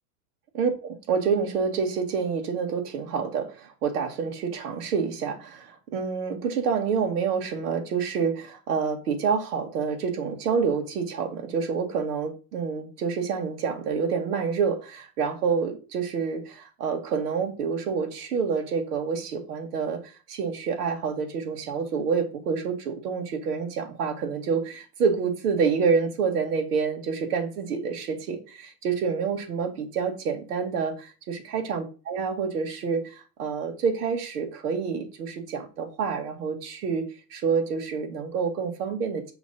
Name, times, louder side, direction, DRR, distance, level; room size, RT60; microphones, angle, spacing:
voice 1, 0.5-31.0 31.3-37.0 37.3-39.3, right 5 dB, 90° right, 1.7 m, -28 dB
6.0 x 3.2 x 5.3 m
supercardioid pair, 130°, 45 cm